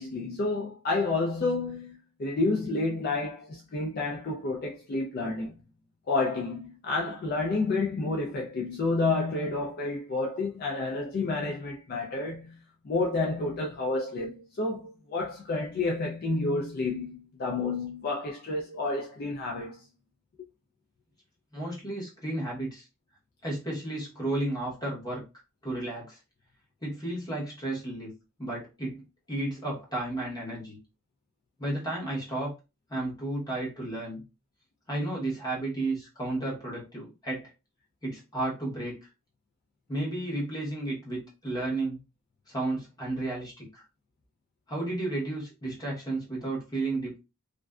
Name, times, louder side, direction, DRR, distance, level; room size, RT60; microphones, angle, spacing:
voice 1, 0.0-5.6 6.1-19.8, left 3 dB, 45° left, 0.3 m, -30 dB
voice 2, 21.5-22.9 23.4-25.2 25.6-26.2 26.8-28.1 28.4-30.8 31.6-32.5 32.9-34.2 34.9-37.5 38.0-39.0 39.9-42.0 42.5-43.8 44.7-47.2, right 2 dB, 15° left, 1.0 m, -33 dB
2.5 x 2.1 x 2.3 m
head